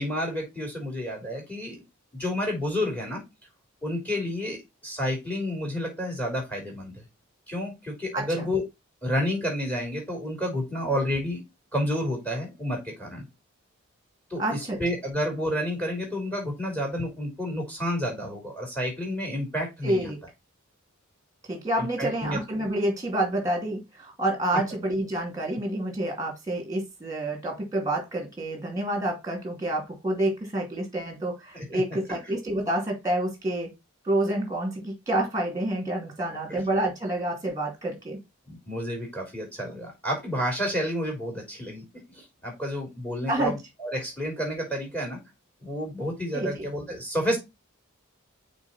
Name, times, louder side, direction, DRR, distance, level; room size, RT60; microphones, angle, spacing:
voice 1, 0.0-1.8 2.1-3.2 3.8-6.9 7.5-8.6 9.0-11.4 11.7-13.2 14.3-20.1 21.8-22.4 31.5-31.8 32.1-32.2 36.5-36.6 38.5-41.8 42.1-45.2 45.6-47.4, equal, 5° left, 2 dB, 3.1 m, -30 dB
voice 2, 8.1-8.5 14.4-14.8 19.8-20.2 21.5-33.7 34.0-38.2 43.3-43.5 46.3-46.7, right 1 dB, 15° right, 2 dB, 2.4 m, -28 dB
6.0 x 4.1 x 4.2 m, 0.22 s
head